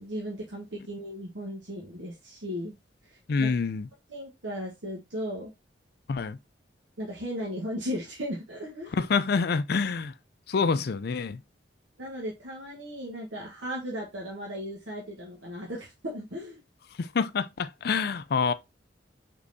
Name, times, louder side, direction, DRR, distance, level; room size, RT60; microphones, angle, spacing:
voice 1, 0.0-2.8 3.0-3.5 4.1-5.5 7.0-8.9 12.0-16.6, equal, 80° right, 1.2 m, -36 dB
voice 2, 3.3-3.9 6.1-6.4 8.9-10.1 10.5-11.4 17.0-18.5, left 5 dB, 55° left, 0.4 m, -27 dB
5.2 x 3.8 x 2.6 m
head